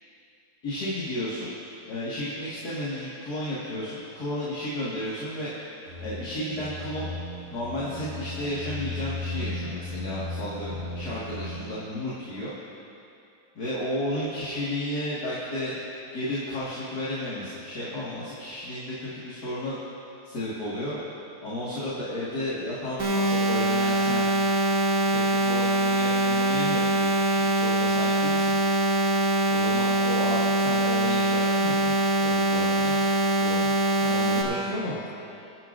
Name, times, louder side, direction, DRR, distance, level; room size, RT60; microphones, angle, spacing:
voice 1, 0.6-1.6 1.8-5.5 6.0-7.1 7.5-12.5 13.6-15.8 16.1-19.8 20.2-21.0 21.4-24.3 25.1-28.6 29.5-33.0 33.4-35.1, left 1 dB, 70° left, -9 dB, 2.6 m, -33 dB
sound 1, 5.9-11.8, left 2 dB, 40° right, 1.5 m, -36 dB
sound 2, 23.0-34.4, right 2 dB, 70° right, 2.3 m, -23 dB
25.5 x 10.0 x 2.6 m, 2.6 s
omnidirectional pair, 1.7 m